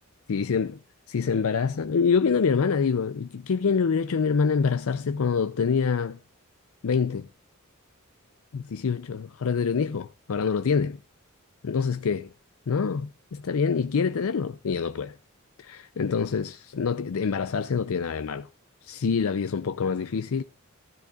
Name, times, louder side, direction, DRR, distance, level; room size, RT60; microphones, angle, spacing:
voice 1, 0.3-0.8 1.1-6.2 6.8-7.3 8.5-11.0 11.6-12.3 12.7-15.2 15.6-18.5 18.8-20.4, left 5 dB, 70° left, 0.5 m, -26 dB
15.5 x 12.5 x 2.4 m
head